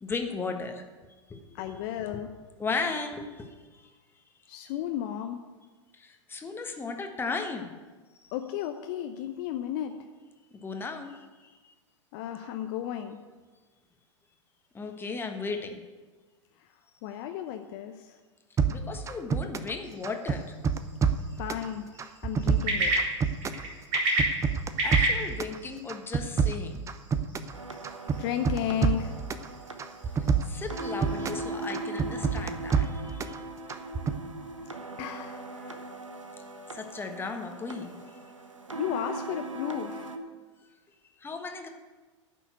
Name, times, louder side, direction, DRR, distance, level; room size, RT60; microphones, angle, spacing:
voice 1, 0.0-0.8 1.3-1.7 2.6-3.8 5.9-7.7 10.6-11.6 14.7-15.8 18.7-20.5 22.6-22.7 24.8-26.8 30.4-33.4 35.5-35.8 36.7-38.2 41.2-41.7, left 4 dB, 15° left, 4 dB, 1.3 m, -36 dB
voice 2, 1.5-2.3 4.5-5.4 8.3-10.0 12.1-13.2 17.0-18.2 21.4-22.9 28.2-29.2 35.0-35.5 38.8-40.1, left 10 dB, 50° left, 6 dB, 0.8 m, -34 dB
sound 1, 18.6-19.8 20.0-21.7 22.0-23.7 23.9-25.6 25.9-27.6 27.8-29.5 29.8-31.4 31.7-33.4 33.7-34.2, right 6 dB, 20° right, 0.7 m, -27 dB
sound 2, 19.8-31.5, right 1 dB, 50° right, 4.0 m, -34 dB
sound 3, 27.5-40.2, right 2 dB, 90° right, 1.1 m, -39 dB
11.0 x 6.2 x 8.1 m, 1.3 s
figure-of-eight pair, 95°, 16 cm